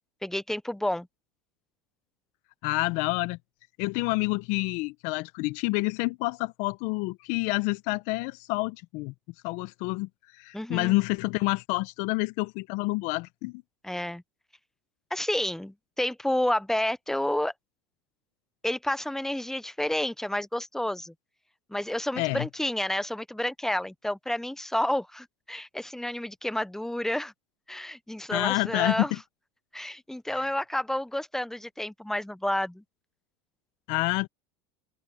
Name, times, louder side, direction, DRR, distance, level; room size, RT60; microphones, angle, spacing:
voice 1, 0.2-1.1 10.5-10.9 13.8-14.2 15.1-17.5 18.6-21.1 21.7-27.3 27.7-29.1 29.7-32.8, left 1 dB, 5° left, 1.0 m, -30 dB
voice 2, 2.6-3.4 3.8-9.1 9.4-13.6 22.2-22.5 28.3-29.2 30.3-30.4 33.9-34.3, left 24 dB, 60° left, 1.1 m, -28 dB
open air
hypercardioid pair, 90°, 14 cm